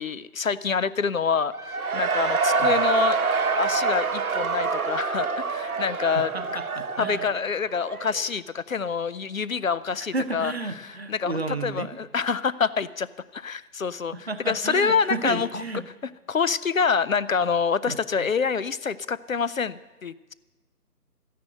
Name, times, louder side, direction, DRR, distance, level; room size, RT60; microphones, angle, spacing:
voice 1, 0.0-3.2 3.6-6.3 7.0-10.5 10.8-13.1 13.3-15.5 16.3-20.3, left 6 dB, 60° left, 17 dB, 0.5 m, -26 dB
Cheering / Crowd, 1.5-8.2, right 4 dB, 65° right, 1.0 m, -26 dB
voice 2, 6.1-7.3 10.1-11.9 14.1-15.8 17.8-18.3, right 3 dB, 40° right, 9 dB, 0.8 m, -32 dB
13.5 x 10.0 x 7.7 m, 1.2 s
figure-of-eight pair, 170°, 46 cm